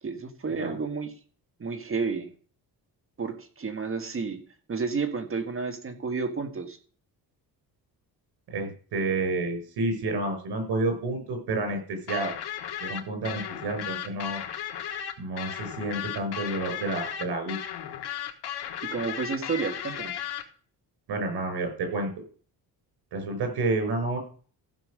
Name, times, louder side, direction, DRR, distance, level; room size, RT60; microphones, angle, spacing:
voice 1, 0.0-1.1 1.6-2.3 3.2-4.4 4.7-6.8 18.8-20.2, right 5 dB, 35° right, 7 dB, 1.6 m, -31 dB
voice 2, 8.5-12.3 12.8-14.4 15.2-17.6 21.1-22.1 23.1-24.2, right 2 dB, 85° right, 5 dB, 5.7 m, -29 dB
sound 1, 12.1-20.4, left 10 dB, 80° left, 1.7 m, -35 dB
15.0 x 5.5 x 6.5 m, 0.42 s
cardioid pair, 120°, 38 cm